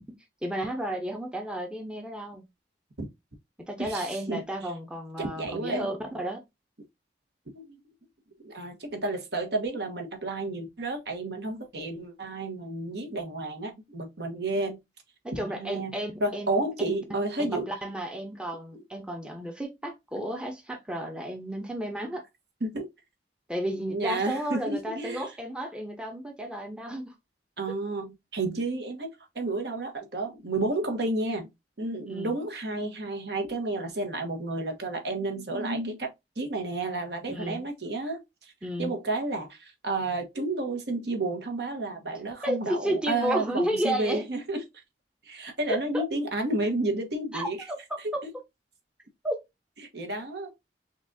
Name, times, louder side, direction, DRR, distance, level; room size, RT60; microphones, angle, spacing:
voice 1, 0.4-2.5 3.7-6.4 15.2-17.2 17.5-22.2 23.5-27.1 32.1-32.4 37.3-37.6 38.6-38.9 42.4-44.3 45.7-46.0 47.3-48.0 49.2-49.4, right 1 dB, 5° right, 0.7 m, -32 dB
voice 2, 3.8-4.4 5.2-5.9 7.5-7.8 8.4-14.8 15.3-17.7 22.6-22.9 23.9-25.3 27.6-31.5 31.8-36.1 36.4-38.5 38.8-44.6 45.2-47.7 48.0-48.1 49.9-50.5, right 2 dB, 65° right, 1.2 m, -31 dB
5.8 x 2.4 x 2.6 m
head